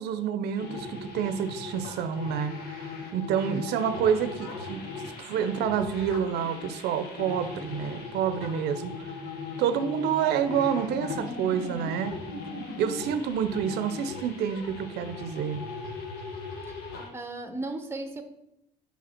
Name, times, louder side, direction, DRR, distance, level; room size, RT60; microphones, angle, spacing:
voice 1, 0.0-4.8 5.2-9.1 9.6-12.1 12.8-15.6, right 8 dB, 80° right, 10 dB, 0.5 m, -28 dB
sound 1, 0.6-17.1, left 3 dB, 75° left, 1.3 m, -38 dB
voice 2, 17.1-18.2, right 2 dB, 15° right, 7 dB, 0.7 m, -35 dB
5.3 x 5.1 x 4.3 m, 0.82 s
cardioid pair, 110°, 17 cm